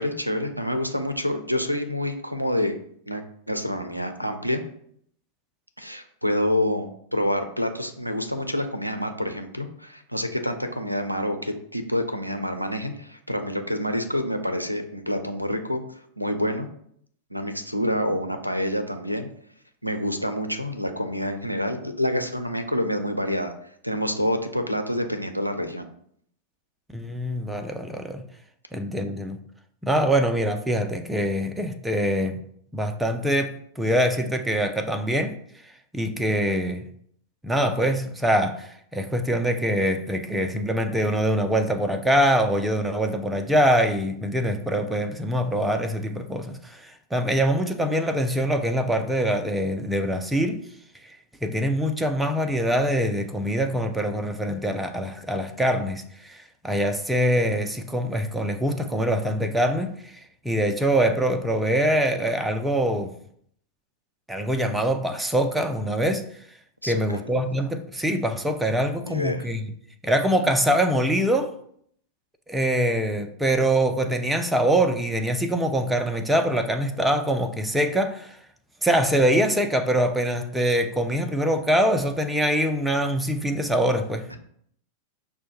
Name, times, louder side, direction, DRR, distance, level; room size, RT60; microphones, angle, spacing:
voice 1, 0.0-2.7 3.1-3.2 3.5-4.6 5.8-16.7 17.3-19.3 19.8-23.5 23.8-25.9 66.8-67.3 69.0-69.5 84.3-84.4, left 1 dB, 90° right, 0.4 m, -27 dB
voice 2, 26.9-28.2 28.7-29.4 29.8-32.4 32.7-35.3 35.9-36.9 37.4-50.6 51.4-60.1 60.4-63.1 64.3-66.2 66.8-69.7 70.0-71.5 72.5-78.4 78.8-84.3, equal, 5° right, 0.4 m, -24 dB
6.0 x 2.1 x 2.9 m
figure-of-eight pair, 90°, 0 cm